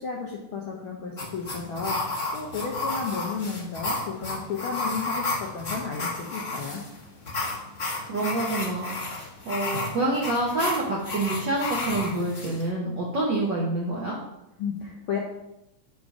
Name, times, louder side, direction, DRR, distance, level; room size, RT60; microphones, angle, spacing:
voice 1, 0.0-6.8 14.6-15.2, left 5 dB, 75° left, -1 dB, 1.2 m, -33 dB
sound 1, 1.2-12.7, left 2 dB, 35° left, 0.9 m, -32 dB
voice 2, 8.0-14.2, right 2 dB, 65° right, -4 dB, 1.1 m, -27 dB
5.3 x 5.1 x 4.7 m, 0.87 s
omnidirectional pair, 3.3 m